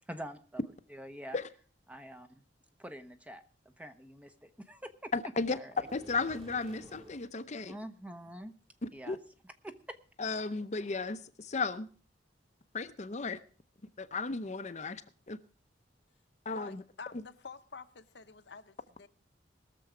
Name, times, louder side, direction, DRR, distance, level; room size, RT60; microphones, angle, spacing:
voice 1, 0.1-0.6 0.9-1.4 1.9-2.3 2.8-3.4 3.8-5.1 5.5-5.7 7.7-8.5 8.9-9.2 9.9-10.0, right 1 dB, 10° right, 0.8 m, -45 dB
voice 2, 5.1-5.6 5.9-7.8 8.8-9.2 10.2-11.9 12.7-13.4 14.0-15.0 15.3-15.4 16.5-16.8, left 4 dB, 40° left, 0.7 m, -35 dB
sound 1, 5.8-7.3, equal, 30° right, 2.1 m, -53 dB
voice 3, 16.5-19.1, left 5 dB, 65° left, 0.9 m, -48 dB
20.5 x 6.9 x 4.9 m
head